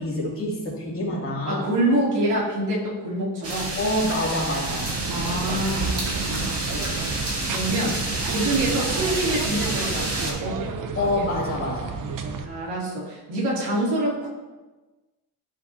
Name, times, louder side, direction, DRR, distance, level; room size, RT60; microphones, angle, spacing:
voice 1, 0.0-1.7 3.7-4.9 10.9-11.9, left 1 dB, 35° left, -5 dB, 2.7 m, -26 dB
voice 2, 1.5-3.7 5.1-6.0 6.2-6.9 7.5-7.9 8.3-10.6 12.4-14.3, right 1 dB, 90° right, -5 dB, 2.8 m, -26 dB
sound 1, 3.4-10.3, right 1 dB, 35° right, 2.0 m, -29 dB
sound 2, 4.7-12.5, right 5 dB, 55° right, 0.8 m, -31 dB
13.0 x 5.2 x 2.8 m, 1.2 s
cardioid pair, 145°, 39 cm